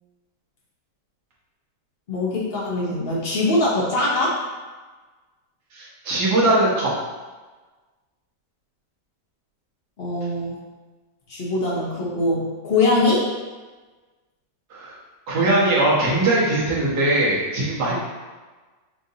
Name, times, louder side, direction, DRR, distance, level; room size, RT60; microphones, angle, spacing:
voice 1, 2.1-4.4 10.0-10.6 11.3-13.3 17.9-18.0, left 2 dB, 50° left, -4 dB, 0.7 m, -22 dB
voice 2, 5.7-7.0 14.7-15.0 15.3-18.0, right 2 dB, 60° right, -7 dB, 1.7 m, -20 dB
5.8 x 2.6 x 2.7 m, 1.3 s
omnidirectional pair, 1.9 m